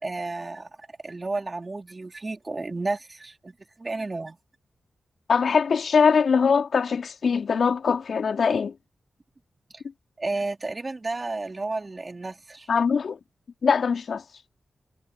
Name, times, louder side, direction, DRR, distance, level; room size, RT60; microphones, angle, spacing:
voice 1, 0.0-4.4 10.2-12.7, right 3 dB, 35° right, 4.4 m, -32 dB
voice 2, 5.3-8.8 12.7-13.2 13.6-14.2, left 6 dB, 70° left, 4.0 m, -22 dB
cardioid pair, 50°, 0 cm